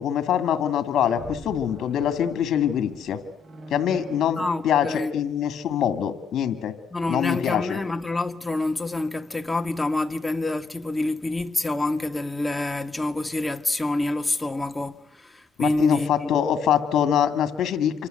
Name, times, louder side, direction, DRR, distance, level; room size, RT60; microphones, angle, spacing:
voice 1, 0.0-3.2 3.7-6.7 7.1-7.8 15.6-18.1, left 9 dB, 70° left, 2.4 m, -24 dB
sound 1, 0.8-5.1, right 2 dB, 45° right, 7.7 m, -43 dB
voice 2, 4.4-5.1 6.9-16.3, left 2 dB, 15° left, 1.8 m, -27 dB
28.5 x 25.5 x 8.0 m
cardioid pair, 90°, 0 cm